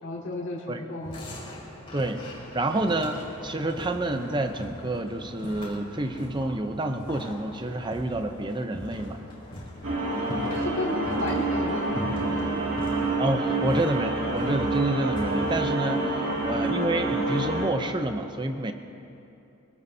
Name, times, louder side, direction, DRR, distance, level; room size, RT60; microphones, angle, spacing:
voice 1, 0.0-1.3 10.0-12.8 16.2-16.7, left 2 dB, 55° left, -5 dB, 2.4 m, -34 dB
sound 1, 1.0-17.5, left 1 dB, 25° left, 3.9 m, -42 dB
voice 2, 2.5-9.2 13.2-18.7, right 2 dB, 20° right, 7 dB, 0.7 m, -28 dB
sound 2, 9.8-17.7, right 2 dB, 65° right, 2.4 m, -27 dB
23.5 x 16.5 x 2.8 m, 2.8 s
head